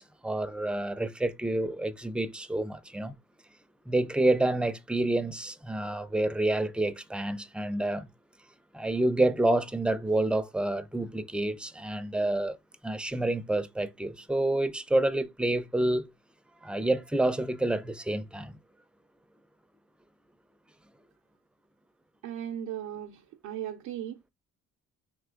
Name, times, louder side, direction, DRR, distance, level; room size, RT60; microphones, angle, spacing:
voice 1, 0.0-3.1 3.9-8.1 8.7-12.6 12.8-16.1 16.6-18.6, right 1 dB, 5° right, 0.4 m, -28 dB
voice 2, 22.2-24.2, right 10 dB, 85° right, 0.5 m, -37 dB
3.5 x 3.0 x 3.6 m
cardioid pair, 90°, 30 cm